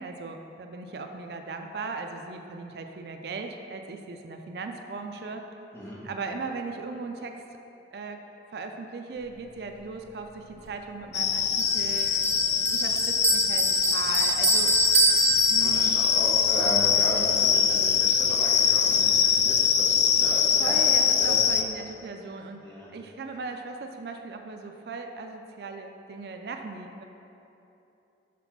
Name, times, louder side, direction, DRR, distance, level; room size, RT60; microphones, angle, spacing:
voice 1, 0.0-5.5 6.0-7.4 7.9-8.2 8.5-12.2 12.7-14.7 15.5-16.0 20.6-27.0, right 3 dB, 65° right, 5 dB, 0.4 m, -38 dB
sound 1, 11.1-21.6, left 7 dB, 40° left, 0.3 m, -23 dB
Bell, 11.6-16.1, right 4 dB, 35° right, 0.7 m, -26 dB
voice 2, 15.6-20.8 21.1-21.4 22.6-22.9, right 1 dB, 15° left, -6 dB, 1.2 m, -35 dB
5.9 x 3.9 x 5.9 m, 2.9 s
head